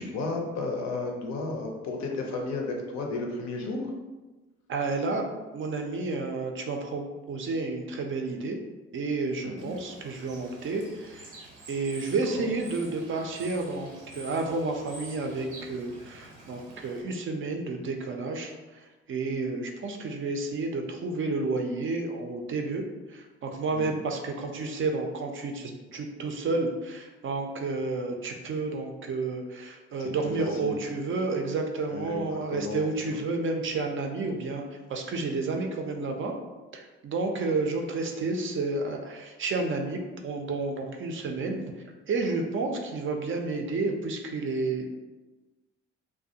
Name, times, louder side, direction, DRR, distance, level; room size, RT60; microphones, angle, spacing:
voice 1, 0.0-3.9 9.4-9.7 12.3-12.5 23.7-24.0 30.0-30.9 31.9-32.8, left 3 dB, 55° left, 1 dB, 0.6 m, -33 dB
voice 2, 4.7-5.2 5.5-8.6 8.9-11.3 11.7-36.3 36.7-41.6 42.1-44.9, right 3 dB, 40° right, 3 dB, 0.4 m, -31 dB
Bird / Water, 9.6-17.0, right 2 dB, 85° right, 0.6 m, -48 dB
2.3 x 2.1 x 2.7 m, 1.2 s
hypercardioid pair, 45°, 32 cm